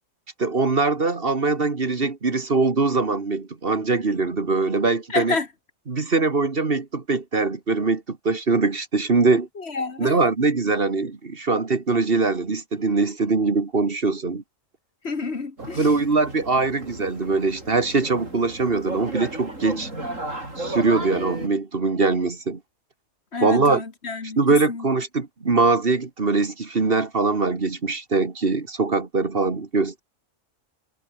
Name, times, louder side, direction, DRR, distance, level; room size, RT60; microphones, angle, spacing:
voice 1, 0.4-5.4 5.9-9.5 10.0-14.4 15.7-19.9 20.6-22.6 23.4-23.8 24.4-30.0, right 3 dB, 45° right, 2.1 m, -22 dB
voice 2, 5.1-5.5 9.6-10.1 15.0-15.9 23.3-24.9, left 4 dB, 55° left, 2.2 m, -29 dB
sound 1, 15.6-21.5, right 1 dB, 80° right, 7.9 m, -34 dB
omnidirectional pair, 1.3 m